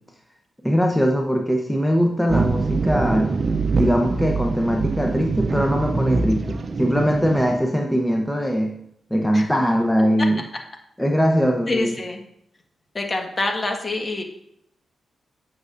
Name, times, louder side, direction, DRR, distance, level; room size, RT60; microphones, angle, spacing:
voice 1, 0.6-3.3 3.8-8.8 9.1-10.4 11.0-12.0, equal, 5° left, 2 dB, 0.9 m, -21 dB
sound 1, 2.3-7.5, right 3 dB, 50° right, 0.6 m, -24 dB
voice 2, 11.7-12.2 12.9-14.2, left 2 dB, 40° left, 3 dB, 1.5 m, -26 dB
9.3 x 6.2 x 2.6 m, 0.73 s
supercardioid pair, 50°, 0 cm